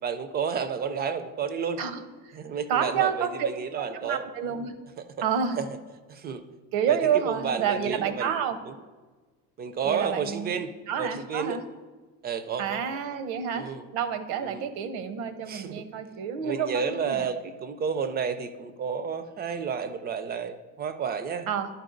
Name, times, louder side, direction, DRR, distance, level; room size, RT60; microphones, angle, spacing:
voice 1, 0.0-1.8 2.3-4.2 5.0-5.1 5.6-5.8 6.1-6.4 6.9-8.8 9.6-10.7 11.0-11.6 12.2-13.0 13.5-13.8 14.4-14.7 15.5-15.9 16.4-21.5, right 6 dB, 25° right, 11 dB, 0.4 m, -31 dB
voice 2, 1.8-2.4 2.7-3.5 3.8-4.7 5.2-5.6 6.7-8.6 9.8-10.6 10.9-11.6 12.6-17.3 21.5-21.7, right 8 dB, 80° right, 10 dB, 0.8 m, -29 dB
11.0 x 4.6 x 3.8 m, 1.4 s
cardioid pair, 135°, 36 cm